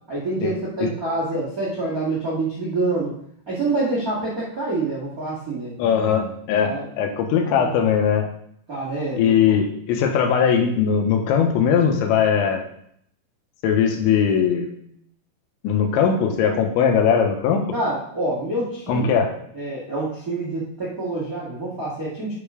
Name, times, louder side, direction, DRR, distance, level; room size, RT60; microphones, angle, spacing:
voice 1, 0.1-3.2 3.5-5.8 6.6-6.9 7.4-7.7 8.7-9.6 17.7-19.1 19.5-22.3, right 2 dB, 35° right, -6 dB, 1.4 m, -26 dB
voice 2, 5.8-8.3 9.2-12.6 13.6-14.7 15.6-17.7 18.9-19.3, left 7 dB, 85° left, 4 dB, 3.5 m, -20 dB
9.3 x 5.2 x 5.1 m, 0.68 s
omnidirectional pair, 5.2 m